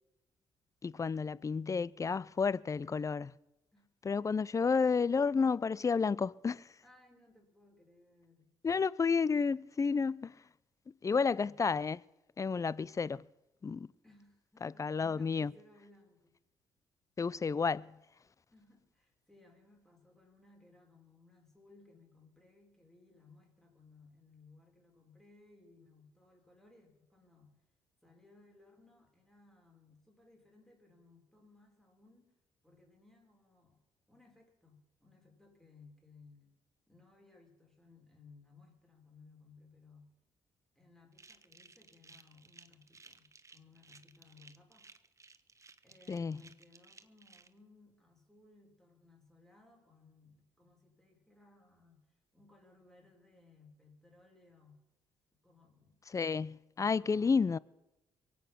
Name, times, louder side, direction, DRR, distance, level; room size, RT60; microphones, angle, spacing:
voice 1, 0.8-3.3 4.0-6.7 8.6-10.4 11.0-12.0 12.4-13.2 13.6-13.9 14.6-15.5 17.2-18.0 46.1-46.4 56.1-57.6, left 5 dB, 30° left, 0.5 m, -31 dB
voice 2, 6.8-8.5 11.1-11.6 14.0-16.4 18.5-27.6 28.0-32.3 32.6-33.8 34.1-36.5 36.9-40.1 40.7-44.9 45.8-54.8 55.4-56.0 56.8-57.6, left 3 dB, 5° left, 5.0 m, -62 dB
sound 1, 41.1-47.5, right 4 dB, 30° right, 1.0 m, -59 dB
23.0 x 8.7 x 5.9 m
supercardioid pair, 55°, 11 cm